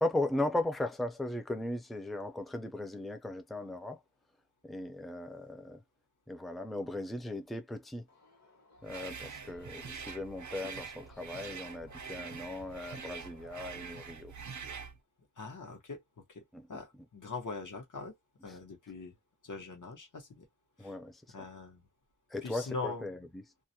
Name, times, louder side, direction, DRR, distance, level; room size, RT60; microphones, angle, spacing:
voice 1, 0.0-4.0 4.6-5.8 6.3-8.0 8.8-14.3 16.5-16.8 18.5-18.6 20.8-21.2 22.3-23.2, left 1 dB, ahead, 0.4 m, -37 dB
Subway metro underground, 8.1-14.0, left 3 dB, 60° left, 1.1 m, -59 dB
sound 1, 8.8-15.0, right 6 dB, 65° right, 0.5 m, -45 dB
voice 2, 15.4-16.4 16.7-18.1 18.4-19.1 19.4-20.5 20.8-21.0 21.3-21.8 22.4-23.1, left 3 dB, 80° left, 0.9 m, -42 dB
2.4 x 2.1 x 2.6 m
wide cardioid pair, 65°, 31 cm